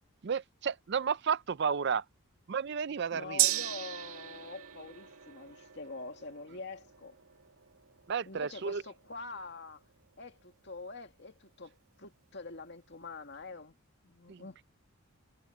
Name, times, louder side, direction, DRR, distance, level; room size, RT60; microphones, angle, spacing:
voice 1, 0.2-2.0 2.5-3.4 8.1-8.8 14.3-14.4, right 6 dB, 50° right, 0.4 m, -32 dB
voice 2, 3.1-7.2 8.3-9.8 10.2-13.8 14.0-14.6, left 3 dB, 50° left, 2.2 m, -45 dB
Gong, 3.4-11.1 11.5-11.6, right 14 dB, 75° right, 1.8 m, -37 dB
head